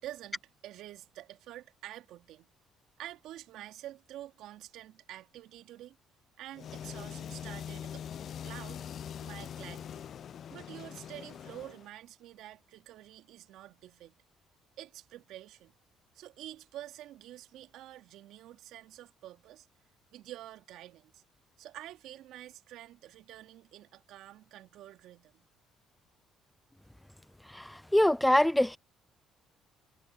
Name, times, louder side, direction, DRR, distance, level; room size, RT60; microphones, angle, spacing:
voice 1, 0.0-2.5 3.0-6.0 6.4-8.0 8.4-8.9 9.2-10.0 10.5-14.2 14.8-15.7 16.1-19.7 20.1-21.2 21.6-25.4, right 13 dB, 70° right, 2.5 m, -48 dB
sound 1, 6.5-11.9, left 9 dB, 55° left, 0.7 m, -43 dB
voice 2, 27.5-28.8, left 1 dB, 5° left, 1.0 m, -24 dB
hypercardioid pair, 60°, 0 cm